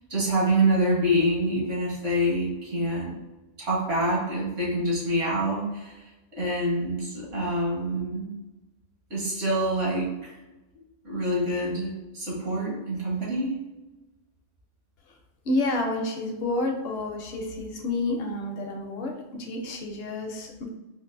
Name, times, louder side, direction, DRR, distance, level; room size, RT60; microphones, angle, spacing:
voice 1, 0.1-3.1 3.6-5.9 6.4-8.3 9.1-10.3 11.0-13.6, right 1 dB, 80° right, -5 dB, 1.7 m, -26 dB
voice 2, 15.4-20.7, left 2 dB, 60° left, 2 dB, 0.8 m, -29 dB
4.6 x 2.4 x 2.5 m, 1.1 s
omnidirectional pair, 1.3 m